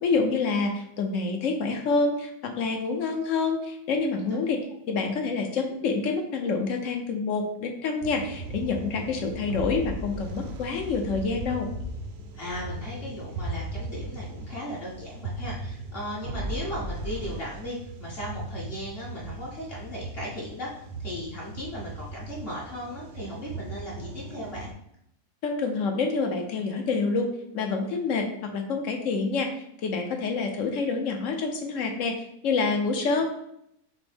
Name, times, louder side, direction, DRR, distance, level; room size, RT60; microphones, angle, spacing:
voice 1, 0.0-4.6 4.9-11.7 25.4-27.3 27.5-29.5 29.8-32.1 32.4-33.3, left 4 dB, 65° left, 3 dB, 0.9 m, -27 dB
sound 1, 8.0-24.7, right 1 dB, 75° right, 0.6 m, -37 dB
voice 2, 12.3-24.7, equal, 40° left, -5 dB, 1.3 m, -37 dB
6.0 x 2.0 x 3.4 m, 0.75 s
omnidirectional pair, 1.7 m